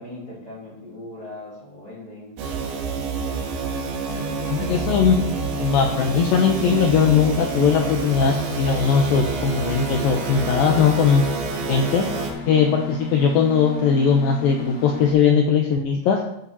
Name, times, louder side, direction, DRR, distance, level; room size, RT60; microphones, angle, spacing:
voice 1, 0.0-2.3, left 2 dB, 25° left, -6 dB, 2.7 m, -39 dB
sound 1, 2.4-12.3, right 5 dB, 80° right, 3.8 m, -28 dB
sound 2, 4.1-15.1, left 2 dB, 55° left, 2.9 m, -34 dB
voice 2, 4.5-5.2 5.6-11.2 11.7-12.1 12.5-16.2, left 6 dB, 85° left, 2 dB, 2.0 m, -19 dB
14.0 x 8.6 x 2.9 m, 0.78 s
omnidirectional pair, 5.1 m